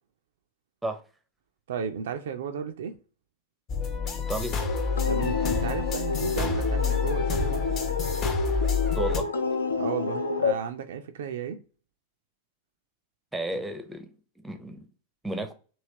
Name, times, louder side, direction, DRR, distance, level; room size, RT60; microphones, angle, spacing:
voice 1, 1.7-2.9 5.0-7.8 9.8-11.6, right 7 dB, 60° right, 0.3 m, -34 dB
sound 1, 3.7-9.2, left 5 dB, 35° left, 0.6 m, -28 dB
voice 2, 4.1-4.6 8.9-9.3 13.3-14.1 14.4-14.9 15.2-15.5, right 1 dB, 5° right, 0.5 m, -32 dB
sound 2, 4.6-10.5, left 4 dB, 75° left, 0.4 m, -29 dB
3.1 x 2.8 x 2.7 m
figure-of-eight pair, 90°, 0 cm